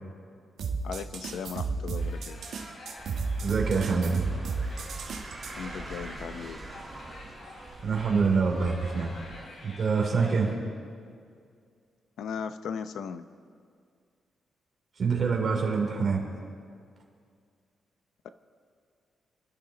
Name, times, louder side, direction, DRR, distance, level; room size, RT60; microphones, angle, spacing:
sound 1, 0.6-5.5, right 4 dB, 70° right, 1.4 m, -33 dB
voice 1, 0.8-2.4 5.6-6.6 12.2-13.2, left 6 dB, 75° left, 10 dB, 0.7 m, -37 dB
sound 2, 2.0-10.6, left 1 dB, 55° left, 3.9 m, -49 dB
sound 3, 3.0-9.5, right 2 dB, 10° right, 2.4 m, -44 dB
voice 2, 3.4-4.2 7.8-9.2 9.6-10.5 15.0-16.2, right 5 dB, 40° right, 0 dB, 3.2 m, -26 dB
28.5 x 12.0 x 4.0 m, 2.2 s
wide cardioid pair, 175°, 0 cm